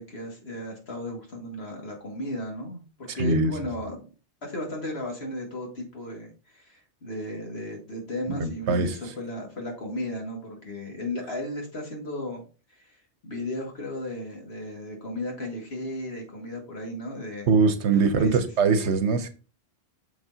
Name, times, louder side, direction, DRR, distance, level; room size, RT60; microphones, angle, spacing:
voice 1, 0.0-4.0 4.4-12.4 12.7-13.0 13.2-17.5 17.9-18.5, left 1 dB, 65° left, 2.3 m, -35 dB
voice 2, 3.2-3.5 8.3-8.9 17.5-19.3, right 4 dB, 80° right, 1.1 m, -22 dB
6.7 x 6.3 x 2.8 m
omnidirectional pair, 1.1 m